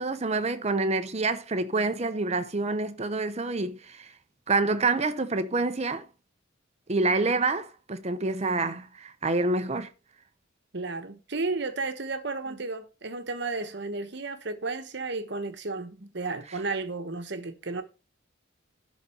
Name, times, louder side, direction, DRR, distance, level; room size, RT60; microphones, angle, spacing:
voice 1, 0.0-4.1 4.5-6.1 6.9-9.9, right 3 dB, 35° right, 0.8 m, -27 dB
voice 2, 10.7-17.8, right 3 dB, 60° right, 1.2 m, -33 dB
11.5 x 4.2 x 5.6 m
head